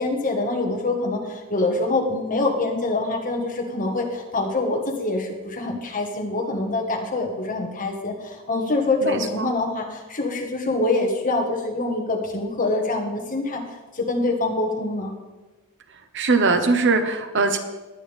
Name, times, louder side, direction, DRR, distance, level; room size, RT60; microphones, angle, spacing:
voice 1, 0.0-13.6 13.9-15.1, left 2 dB, 35° left, 1 dB, 1.7 m, -25 dB
voice 2, 9.0-9.5 16.1-17.6, right 3 dB, 55° right, 7 dB, 1.1 m, -21 dB
20.0 x 8.6 x 3.6 m, 1.1 s
head